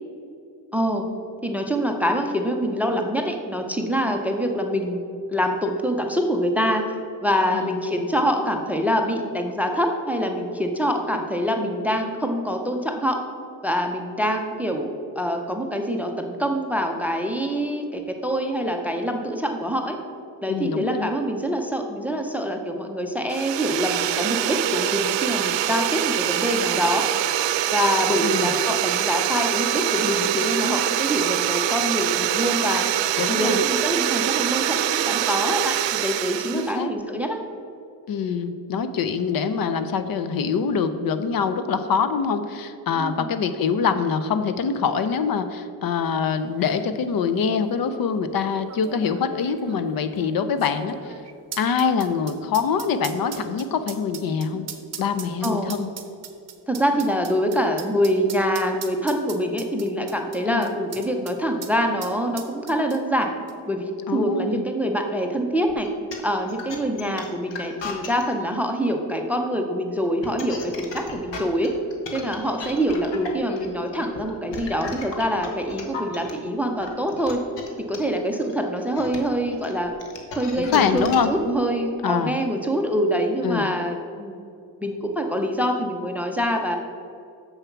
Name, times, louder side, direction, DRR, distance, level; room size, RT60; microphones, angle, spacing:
voice 1, 0.7-1.0 1.4-5.0 5.3-6.8 7.2-13.2 13.6-20.0 20.4-27.0 27.7-32.9 33.3-37.4 43.0-43.3 55.4-55.7 56.7-63.3 63.7-65.9 66.2-71.7 72.1-77.4 77.9-79.9 80.3-84.4 84.8-86.8, equal, 5° right, 4 dB, 0.5 m, -25 dB
voice 2, 20.5-21.1 28.2-28.5 33.2-33.6 36.5-36.9 38.1-51.1 51.6-54.7 55.0-55.9 60.5-60.7 64.1-64.6 80.5-81.3 82.0-82.3 83.4-83.7, left 6 dB, 55° left, 10 dB, 0.6 m, -24 dB
sound 1, 23.3-36.7, right 12 dB, 85° right, 0.6 m, -24 dB
sound 2, 46.1-46.2 46.4-46.9 47.6-47.7 48.7-61.4 61.6-61.7 62.0-63.2 63.5-63.6, right 8 dB, 35° right, 0.8 m, -39 dB
sound 3, 65.7-68.2 70.1-76.3 76.8-81.4, left 4 dB, 85° left, 1.4 m, -35 dB
7.2 x 6.8 x 5.8 m, 2.5 s
cardioid pair, 165°, 42 cm